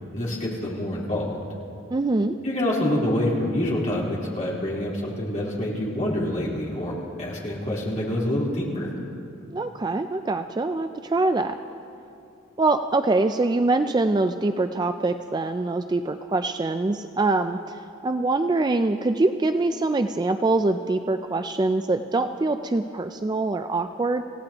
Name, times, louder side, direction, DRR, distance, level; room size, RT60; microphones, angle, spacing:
voice 1, 0.1-1.4 2.4-8.9, left 1 dB, 35° left, -6 dB, 3.8 m, -26 dB
voice 2, 1.9-2.3 9.5-11.6 12.6-17.8 18.0-24.2, right 2 dB, 20° right, 8 dB, 0.3 m, -24 dB
27.5 x 16.5 x 2.9 m, 2.6 s
head